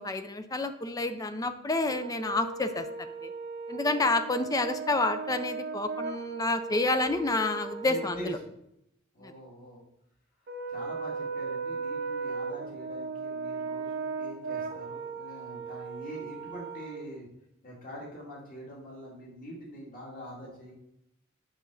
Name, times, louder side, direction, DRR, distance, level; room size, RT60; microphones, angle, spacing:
voice 1, 0.0-2.8 3.2-3.3 3.7-8.4 9.2-9.3, left 2 dB, 15° left, 9 dB, 0.4 m, -29 dB
Brass instrument, 1.9-8.4 10.5-17.0, right 4 dB, 50° right, 0.7 m, -37 dB
voice 2, 7.8-8.3 9.1-9.8 10.7-17.3 17.6-20.7, equal, 40° left, -3 dB, 2.5 m, -44 dB
8.1 x 3.8 x 6.3 m, 0.80 s
head